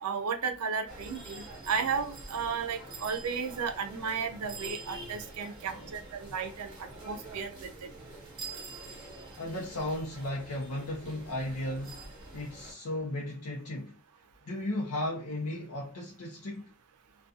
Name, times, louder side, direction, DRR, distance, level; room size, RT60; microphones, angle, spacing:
voice 1, 0.0-7.9, right 6 dB, 90° right, 0.5 m, -34 dB
sound 1, 0.9-12.7, right 3 dB, 25° right, 1.0 m, -46 dB
voice 2, 5.6-5.9 9.4-12.0 12.3-14.0 14.5-16.7, left 1 dB, 85° left, 0.6 m, -35 dB
2.3 x 2.3 x 2.6 m
head